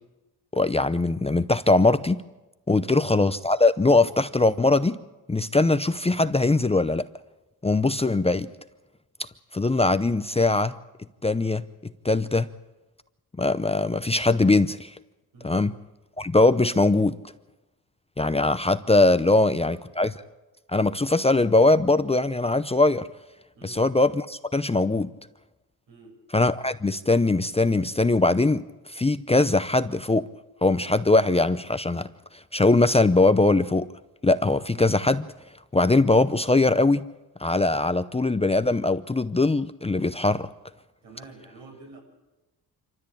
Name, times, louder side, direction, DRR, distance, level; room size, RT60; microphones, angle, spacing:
voice 1, 0.5-2.2 2.7-5.0 5.3-7.1 7.6-8.5 9.5-10.7 11.2-11.6 12.0-12.5 13.4-14.9 15.4-15.7 16.2-17.2 18.2-20.1 20.7-23.1 23.6-25.1 26.3-30.3 30.6-32.1 32.5-33.9 34.2-35.3 35.7-37.0 37.4-40.5, left 2 dB, 15° left, 12 dB, 0.7 m, -21 dB
voice 2, 2.8-3.1 15.3-15.7 19.3-19.8 23.5-23.9 25.9-26.3 41.0-42.0, right 3 dB, 80° right, 1 dB, 7.1 m, -48 dB
26.0 x 13.5 x 8.6 m, 1.1 s
cardioid pair, 80°, 43 cm